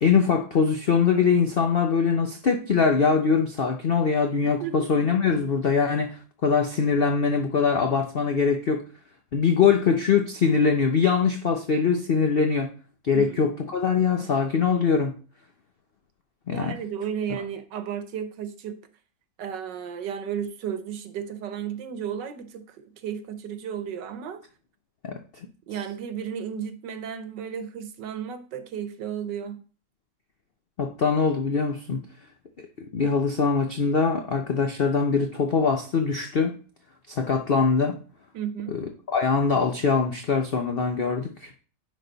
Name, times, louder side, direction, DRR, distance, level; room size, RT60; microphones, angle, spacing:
voice 1, 0.0-8.8 9.3-12.7 13.0-15.1 16.5-16.8 25.0-25.1 30.8-32.0 32.8-36.5 37.1-38.0 38.7-41.5, left 5 dB, 65° left, 0.5 m, -23 dB
voice 2, 13.1-13.5 16.5-18.8 19.4-24.4 25.7-29.6 38.3-38.8, right 8 dB, 75° right, 1.5 m, -33 dB
10.0 x 4.1 x 4.0 m
omnidirectional pair, 1.9 m